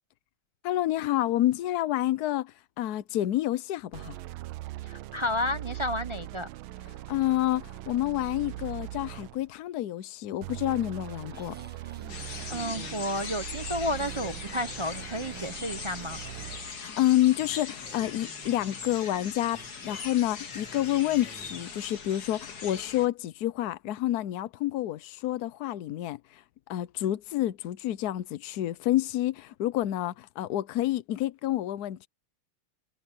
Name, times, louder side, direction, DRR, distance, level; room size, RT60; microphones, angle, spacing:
voice 1, 0.6-4.2 7.1-11.6 16.7-26.4 26.7-32.1, left 14 dB, 75° left, 0.8 m, -29 dB
sound 1, 3.9-9.5 10.4-16.8, right 15 dB, 75° right, 1.4 m, -41 dB
voice 2, 4.8-6.5 12.2-16.2, left 1 dB, 40° right, 0.4 m, -32 dB
sound 2, 10.7-21.7, right 1 dB, 5° right, 1.0 m, -51 dB
sound 3, 12.1-23.1, left 5 dB, 45° left, 2.2 m, -41 dB
omnidirectional pair, 2.4 m